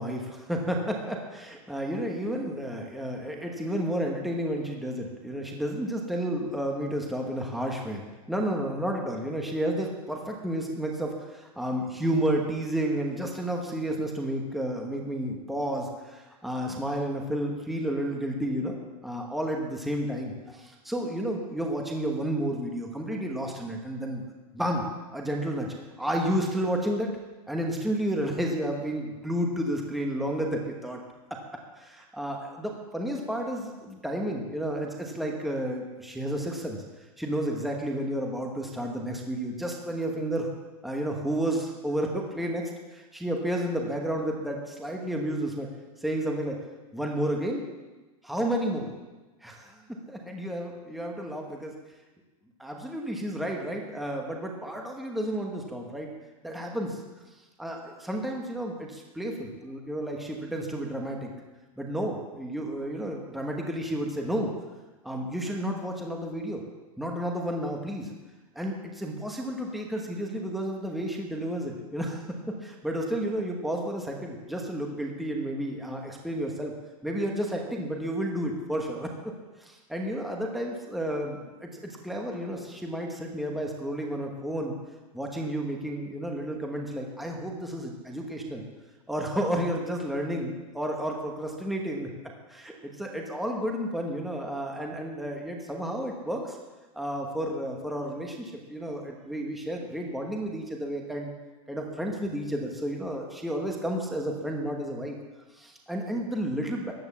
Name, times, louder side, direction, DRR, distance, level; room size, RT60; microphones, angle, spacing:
voice 1, 0.0-18.7 19.0-24.2 24.5-24.9 25.1-27.1 27.5-31.0 31.3-31.4 31.8-36.8 37.2-40.5 40.8-45.7 46.0-46.6 46.9-47.6 48.2-48.9 49.4-49.8 50.1-51.7 52.6-56.1 56.4-57.0 57.6-61.3 61.8-64.5 65.0-66.6 67.0-68.1 68.5-72.3 72.6-76.7 77.0-79.1 79.6-84.8 85.1-88.6 89.1-92.1 92.5-96.6 96.9-101.3 101.7-105.1 105.6-106.9, right 1 dB, ahead, 0 dB, 1.1 m, -31 dB
14.5 x 10.5 x 7.2 m, 1.2 s
supercardioid pair, 180°, 19 cm